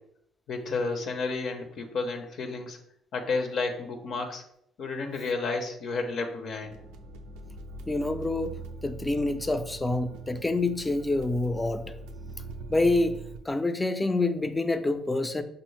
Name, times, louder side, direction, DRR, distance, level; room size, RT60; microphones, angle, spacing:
voice 1, 0.5-2.8 3.1-4.4 4.8-6.8, left 3 dB, 65° left, 5 dB, 0.5 m, -31 dB
sound 1, 6.6-13.4, right 2 dB, 90° right, 0.3 m, -42 dB
voice 2, 7.9-11.8 12.7-13.2 13.5-15.4, left 2 dB, 15° left, 9 dB, 0.4 m, -27 dB
5.3 x 2.0 x 3.1 m, 0.74 s
supercardioid pair, 80°, 0 cm